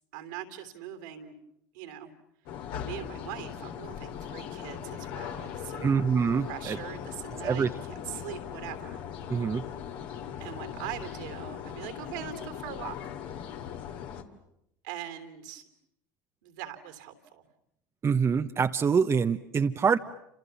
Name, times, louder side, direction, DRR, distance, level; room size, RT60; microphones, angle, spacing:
voice 1, 0.1-1.3 1.7-2.1 2.8-6.0 6.4-9.0 10.4-13.0 14.8-15.7 16.4-17.5, right 11 dB, 75° right, 8 dB, 3.3 m, -41 dB
sound 1, 2.5-14.2, left 9 dB, 60° left, 2.4 m, -39 dB
voice 2, 5.8-6.8 7.4-7.7 9.3-9.6 18.0-20.0, right 6 dB, 30° right, 8 dB, 1.0 m, -25 dB
29.5 x 27.0 x 7.1 m, 0.79 s
hypercardioid pair, 75°, 10 cm